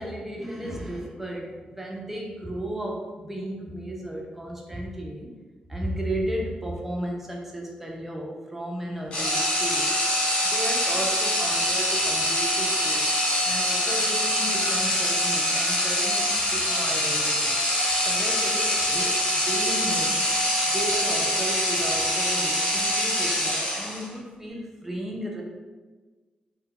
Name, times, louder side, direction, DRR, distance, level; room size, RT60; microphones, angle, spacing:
voice 1, 0.0-5.3 5.7-10.0 10.4-13.1 13.4-17.5 18.0-20.2 20.6-25.4, right 1 dB, 10° right, -1 dB, 0.3 m, -34 dB
sound 1, 9.1-24.2, left 1 dB, 45° left, 0.7 m, -24 dB
2.2 x 2.1 x 3.6 m, 1.3 s
wide cardioid pair, 175°, 3 cm